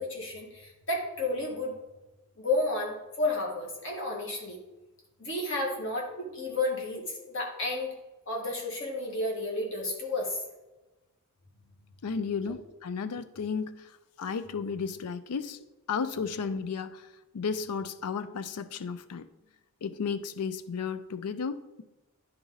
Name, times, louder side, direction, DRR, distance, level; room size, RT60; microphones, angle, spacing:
voice 1, 0.0-1.7 2.4-4.6 5.2-7.9 8.3-10.4, left 2 dB, 55° left, -1 dB, 1.9 m, -31 dB
voice 2, 12.0-13.9 14.2-17.1 17.3-19.3 19.8-21.8, left 5 dB, 90° left, 13 dB, 0.5 m, -33 dB
10.5 x 4.1 x 3.9 m, 1.1 s
head